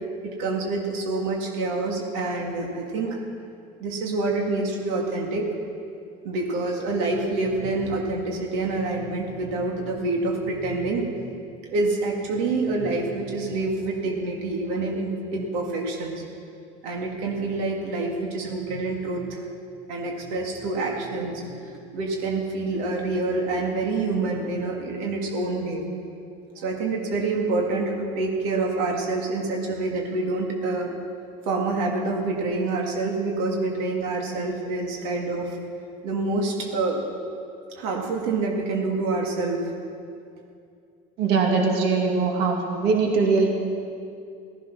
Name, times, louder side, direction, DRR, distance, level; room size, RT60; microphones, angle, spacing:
voice 1, 0.2-3.2 3.8-5.5 6.2-11.1 11.7-16.2 16.8-19.4 19.9-25.8 26.6-31.0 31.5-35.6 36.0-37.0 37.7-39.7, right 3 dB, 80° right, 0 dB, 2.3 m, -27 dB
voice 2, 41.2-43.5, right 4 dB, 60° right, 1 dB, 2.4 m, -21 dB
15.0 x 13.5 x 6.1 m, 2.4 s
supercardioid pair, 120°, 18 cm